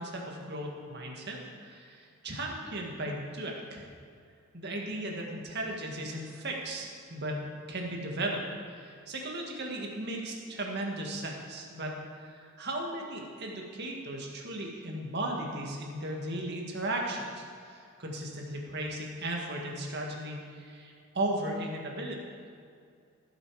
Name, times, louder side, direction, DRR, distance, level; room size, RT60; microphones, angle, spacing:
voice 1, 0.0-1.4 1.6-3.9 4.5-8.4 8.7-22.2, right 1 dB, 50° right, 0 dB, 1.9 m, -36 dB
17.0 x 7.6 x 4.9 m, 2.3 s
head